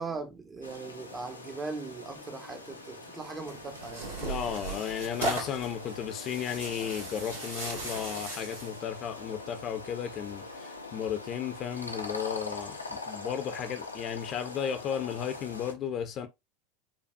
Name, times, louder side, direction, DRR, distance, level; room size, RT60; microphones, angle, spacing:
voice 1, 0.0-4.2, right 4 dB, 20° right, 0.7 m, -39 dB
sound 1, 0.6-15.7, left 3 dB, 85° left, 0.6 m, -43 dB
Tearing, 3.5-8.8, right 2 dB, 75° right, 2.0 m, -37 dB
voice 2, 4.2-16.3, left 9 dB, 35° left, 0.6 m, -34 dB
sound 2, 4.7-12.2, left 1 dB, 90° right, 0.5 m, -48 dB
5.2 x 2.3 x 2.3 m
figure-of-eight pair, 80°, 0 cm